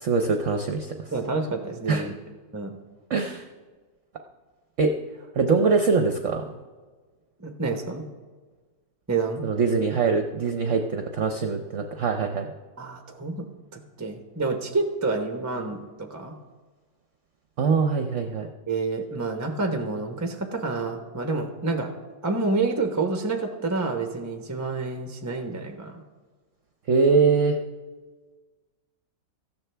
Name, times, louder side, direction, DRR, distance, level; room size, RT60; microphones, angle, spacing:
voice 1, 0.0-1.1 1.9-2.1 3.1-3.4 4.8-4.9 5.4-6.5 9.4-12.5 17.6-18.5 26.9-27.6, right 4 dB, 55° right, 5 dB, 0.9 m, -23 dB
voice 2, 1.1-2.1 2.5-2.7 7.4-8.0 9.1-9.4 12.8-16.4 18.7-21.9 22.2-26.0, right 3 dB, 15° right, 4 dB, 0.6 m, -28 dB
18.0 x 14.0 x 3.4 m, 1.4 s
omnidirectional pair, 1.9 m